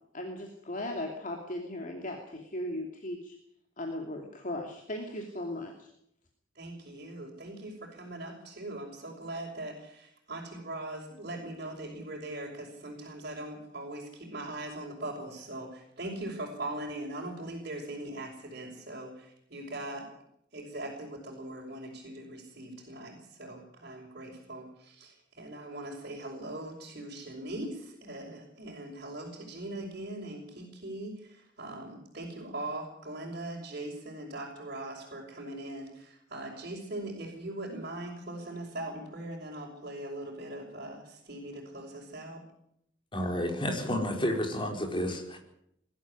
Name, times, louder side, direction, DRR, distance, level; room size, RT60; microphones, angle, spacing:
voice 1, 0.1-3.4 3.8-5.9, left 1 dB, 45° left, 2 dB, 2.8 m, -37 dB
voice 2, 6.5-20.1 20.5-42.4, right 1 dB, 50° right, -5 dB, 5.5 m, -40 dB
voice 3, 43.1-45.4, left 1 dB, 25° left, 2 dB, 4.5 m, -30 dB
21.0 x 13.5 x 10.0 m, 0.75 s
head